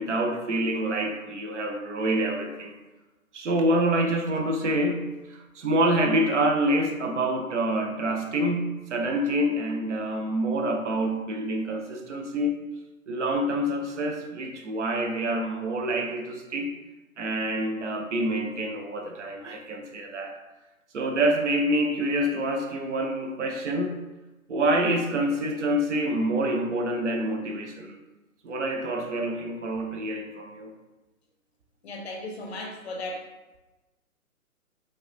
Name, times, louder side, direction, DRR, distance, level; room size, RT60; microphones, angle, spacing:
voice 1, 0.0-2.7 3.3-12.6 13.1-16.7 17.2-20.4 20.9-24.0 24.5-28.0 28.4-30.7, right 1 dB, 55° right, 3 dB, 0.7 m, -27 dB
voice 2, 31.8-33.3, left 1 dB, 45° left, 2 dB, 0.7 m, -36 dB
5.3 x 2.2 x 2.5 m, 1.1 s
figure-of-eight pair, 135°, 43 cm